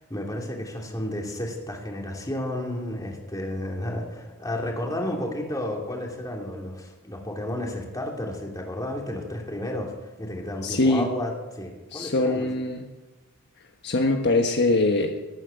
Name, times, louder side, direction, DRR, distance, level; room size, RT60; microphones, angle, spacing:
voice 1, 0.0-12.5, left 1 dB, 15° left, 0 dB, 2.9 m, -32 dB
voice 2, 10.6-11.1 11.9-12.9 13.8-15.2, left 2 dB, 55° left, 3 dB, 1.3 m, -22 dB
19.5 x 9.0 x 7.9 m, 1.2 s
head